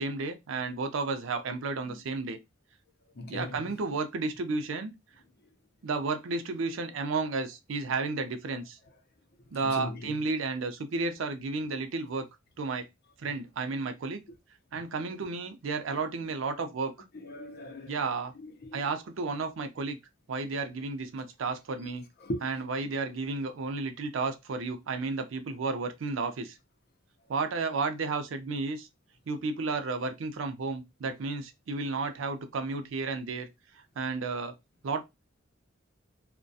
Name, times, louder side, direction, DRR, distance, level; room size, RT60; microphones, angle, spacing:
voice 1, 0.0-2.4 3.3-4.9 5.8-8.8 9.5-12.3 12.6-12.9 13.2-14.2 14.7-16.9 17.9-18.3 18.7-20.0 20.3-22.0 22.4-26.6 27.3-28.9 29.3-33.5 34.0-34.5 34.8-35.0, right 4 dB, 75° right, 0.5 m, -32 dB
voice 2, 3.1-3.6 9.6-10.1 15.9-16.0 17.1-18.1 18.4-18.8 22.2-22.5, left 1 dB, 55° left, 0.6 m, -39 dB
2.3 x 2.2 x 2.6 m
head